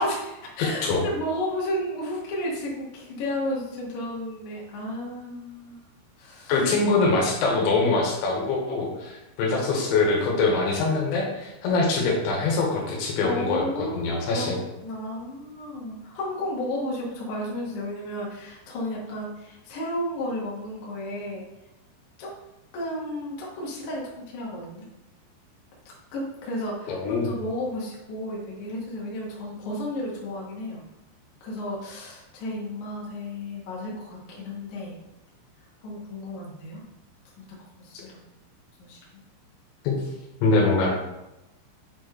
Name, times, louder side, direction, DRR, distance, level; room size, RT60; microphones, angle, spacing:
voice 1, 0.0-5.8 6.2-6.6 13.2-14.5 14.8-21.4 22.2-22.3 22.7-24.8 25.9-30.8 31.4-35.0 35.8-36.8 37.4-38.3 38.8-39.2, left 1 dB, 60° left, -5 dB, 2.1 m, -33 dB
voice 2, 0.6-1.0 6.5-14.6 26.9-27.3 39.8-40.0 40.4-40.9, left 3 dB, 80° left, -1 dB, 3.4 m, -23 dB
8.1 x 4.5 x 3.1 m, 0.94 s
omnidirectional pair, 5.5 m